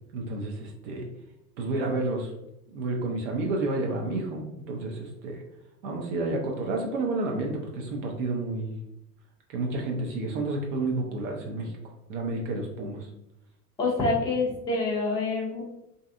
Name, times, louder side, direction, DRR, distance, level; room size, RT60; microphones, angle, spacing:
voice 1, 0.1-1.1 1.6-2.3 2.7-5.4 5.8-8.8 9.5-11.7 12.1-13.1, right 2 dB, 50° right, 1 dB, 0.7 m, -30 dB
voice 2, 13.8-15.6, left 3 dB, 10° left, -3 dB, 0.4 m, -26 dB
2.6 x 2.4 x 2.4 m, 0.84 s
figure-of-eight pair, 85°, 48 cm